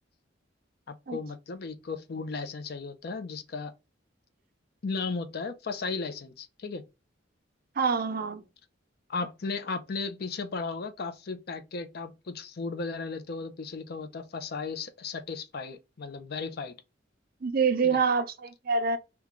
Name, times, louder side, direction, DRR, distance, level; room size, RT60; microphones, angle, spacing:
voice 1, 1.1-3.7 4.8-6.8 9.1-16.7 17.8-18.0, left 4 dB, 55° left, 0.5 m, -35 dB
voice 2, 7.8-8.4 17.4-19.0, right 5 dB, 50° right, 0.5 m, -26 dB
3.0 x 2.2 x 3.6 m
head